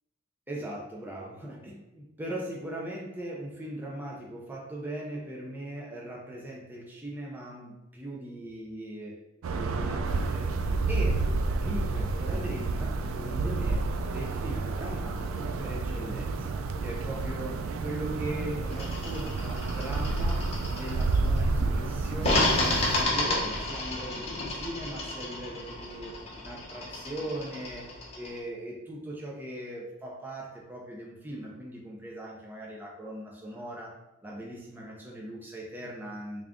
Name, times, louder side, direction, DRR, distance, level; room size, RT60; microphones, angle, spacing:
voice 1, 0.5-9.2 9.5-11.2 11.6-13.9 14.1-20.5 20.7-26.1 26.4-27.8 28.1-33.9 34.2-36.4, right 1 dB, 10° right, -3 dB, 0.5 m, -39 dB
sound 1, 9.4-23.0, right 3 dB, 80° right, 0.3 m, -30 dB
sound 2, 18.7-21.4 22.2-28.4, left 2 dB, 30° left, 0.8 m, -31 dB
3.5 x 2.4 x 3.5 m, 0.97 s
head